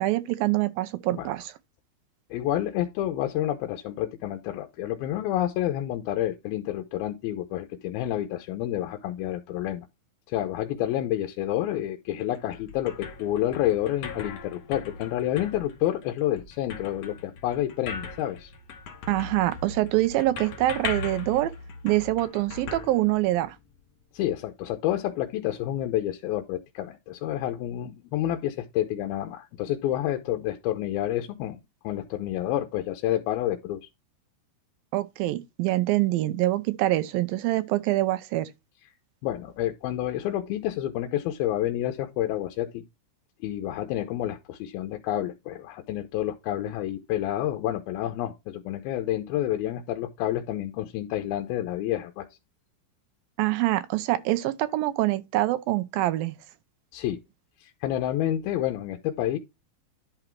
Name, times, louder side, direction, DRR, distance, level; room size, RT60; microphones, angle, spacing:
voice 1, 0.0-1.5 19.1-21.5 21.8-23.6 34.9-38.5 53.4-56.3, right 16 dB, 80° right, 2.2 m, -25 dB
voice 2, 2.3-9.9 10.3-18.5 24.1-31.6 31.8-33.9 39.2-42.8 43.4-52.3 56.9-57.2 57.6-59.4, left 12 dB, 80° left, 2.5 m, -29 dB
sound 1, 12.2-23.7, left 5 dB, 60° left, 1.8 m, -39 dB
11.0 x 3.9 x 4.5 m
omnidirectional pair, 4.4 m